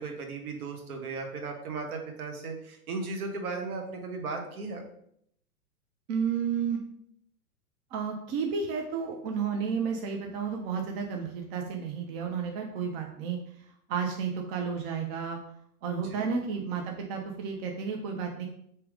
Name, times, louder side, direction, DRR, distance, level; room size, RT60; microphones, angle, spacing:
voice 1, 0.0-4.8 16.1-16.3, right 3 dB, 70° right, 3 dB, 1.2 m, -36 dB
voice 2, 6.1-6.8 7.9-13.4 13.9-15.4 15.8-18.5, right 6 dB, 40° right, 2 dB, 0.7 m, -32 dB
3.4 x 3.0 x 4.8 m, 0.71 s
hypercardioid pair, 115°, 46 cm